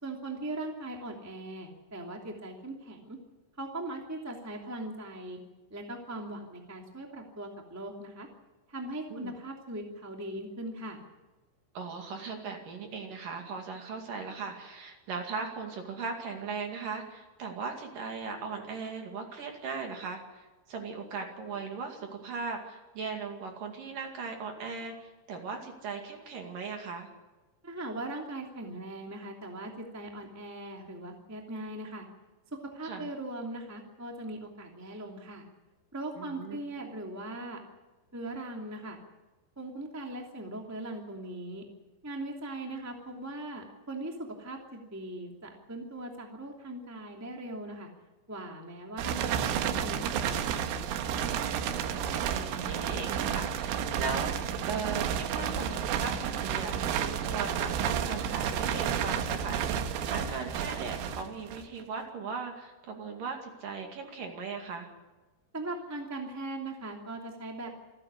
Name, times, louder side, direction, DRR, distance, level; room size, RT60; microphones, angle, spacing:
voice 1, 0.0-3.2 3.6-5.4 5.7-8.3 8.7-11.0 27.6-32.0 32.5-35.5 35.9-37.6 38.1-39.0 39.5-41.6 42.0-47.9 48.3-50.9 65.5-67.8, right 1 dB, 5° right, 1 dB, 1.3 m, -40 dB
voice 2, 11.8-27.1 32.8-33.1 36.2-36.6 51.7-64.9, right 5 dB, 50° right, 3 dB, 3.4 m, -38 dB
sound 1, 49.0-61.8, right 8 dB, 90° right, 3.9 m, -31 dB
27.5 x 11.0 x 9.7 m, 1.2 s
omnidirectional pair, 5.6 m